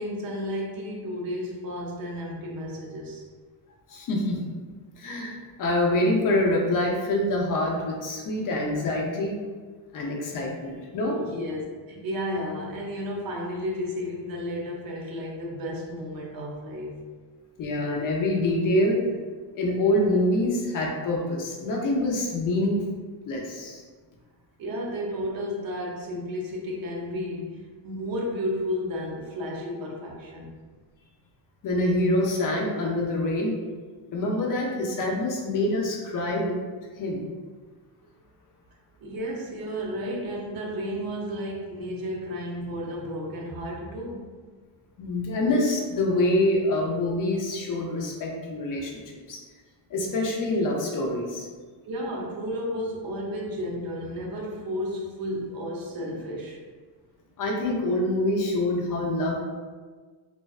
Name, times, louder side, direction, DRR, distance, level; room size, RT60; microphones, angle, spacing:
voice 1, 0.0-3.2 11.2-17.0 24.6-30.5 39.0-44.3 48.7-48.8 51.8-56.6, equal, 50° right, -2 dB, 0.5 m, -32 dB
voice 2, 3.9-4.4 5.0-9.4 9.9-11.2 17.6-19.0 19.5-22.8 23.3-23.8 31.6-33.5 34.1-36.6 37.0-37.3 45.0-49.4 49.9-51.5 57.4-59.4, left 1 dB, 45° left, -1 dB, 0.5 m, -25 dB
2.5 x 2.2 x 2.3 m, 1.5 s
cardioid pair, 150°, 47 cm